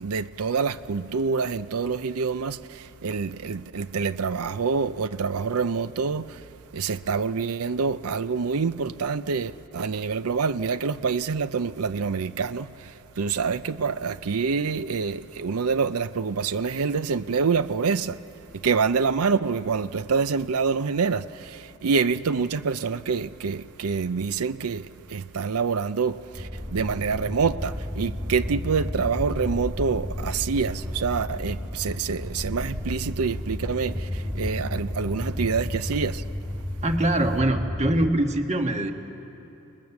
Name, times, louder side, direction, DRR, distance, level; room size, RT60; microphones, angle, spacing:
voice 1, 0.0-6.4 6.7-12.7 13.2-18.2 18.6-36.2, right 5 dB, 80° right, 0.6 m, -26 dB
sound 1, 26.3-38.1, left 1 dB, 15° right, 2.6 m, -32 dB
voice 2, 36.8-38.9, right 1 dB, 30° right, 1.5 m, -23 dB
29.0 x 20.0 x 7.1 m
head